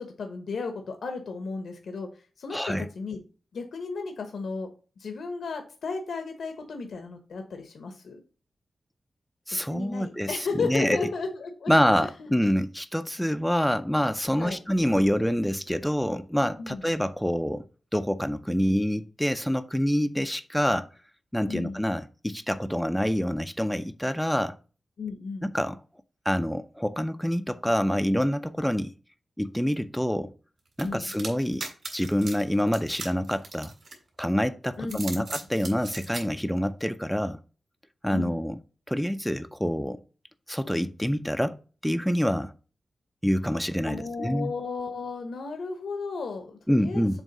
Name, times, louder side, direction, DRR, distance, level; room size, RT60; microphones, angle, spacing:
voice 1, 0.0-2.1 2.4-3.2 3.5-4.7 5.0-8.2 9.7-11.7 12.0-12.3 14.3-14.6 16.6-16.8 21.5-21.8 25.0-25.5 30.8-31.1 34.8-35.2 38.1-38.4 43.8-47.2, left 4 dB, 80° left, 1.1 m, -34 dB
voice 2, 2.5-2.9 9.5-10.3 10.6-11.0 11.7-17.6 17.9-20.9 21.3-24.5 25.4-25.8 26.3-28.9 29.4-30.3 30.8-31.7 31.9-33.7 34.2-37.4 38.0-38.6 38.9-40.0 40.5-42.5 43.2-44.5 46.7-47.2, equal, ahead, 0.4 m, -26 dB
sound 1, 30.8-34.2 34.8-36.2, right 3 dB, 55° right, 3.2 m, -38 dB
7.2 x 3.1 x 5.3 m
wide cardioid pair, 125°, 0 cm